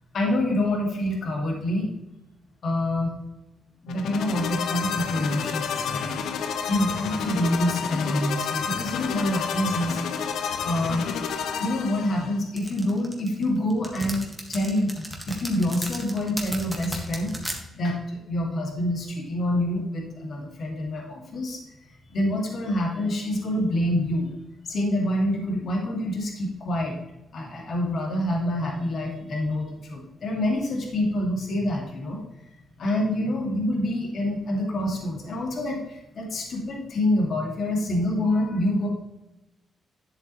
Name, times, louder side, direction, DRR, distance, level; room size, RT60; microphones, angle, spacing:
voice 1, 0.1-1.9 2.6-3.1 3.8-6.2 6.7-10.0 10.3-11.3 11.6-14.2 14.5-17.3 17.7-21.6 22.1-24.3 24.6-27.0 27.3-32.2 32.8-38.9, left 1 dB, 50° left, -1 dB, 2.1 m, -26 dB
sound 1, 3.9-12.4, left 6 dB, 90° left, 0.7 m, -30 dB
sound 2, 12.6-17.6, right 1 dB, 5° right, 1.4 m, -35 dB
10.5 x 7.4 x 3.1 m, 0.94 s
cardioid pair, 150°, 0 cm